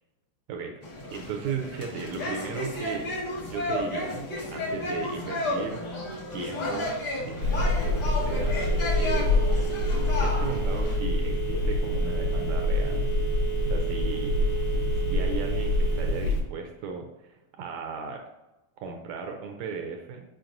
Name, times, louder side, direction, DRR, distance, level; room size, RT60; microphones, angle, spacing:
voice 1, 0.5-3.1 3.4-6.0 6.3-8.6 8.9-9.4 10.2-13.1 13.6-14.6 14.9-18.2 18.8-20.2, right 5 dB, 80° right, 3 dB, 1.6 m, -36 dB
sound 1, 0.8-11.0, left 1 dB, 60° left, 1.1 m, -32 dB
Telephone, 7.4-16.4, left 1 dB, 75° left, 1.1 m, -25 dB
8.9 x 4.6 x 2.5 m, 1.0 s
omnidirectional pair, 3.8 m